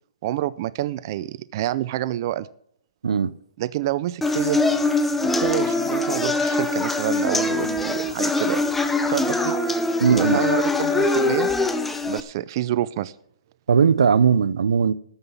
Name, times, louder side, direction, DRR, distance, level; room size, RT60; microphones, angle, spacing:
voice 1, 0.2-2.5 3.6-4.6 5.4-8.6 9.1-9.5 10.1-11.5 12.1-13.1, right 14 dB, 40° right, 0.5 m, -27 dB
voice 2, 3.0-3.3 10.0-10.4 13.7-14.9, right 6 dB, 80° right, 0.6 m, -18 dB
sound 1, 4.2-12.2, left 3 dB, 5° left, 0.7 m, -23 dB
13.5 x 5.6 x 8.3 m
hypercardioid pair, 150°, 3 cm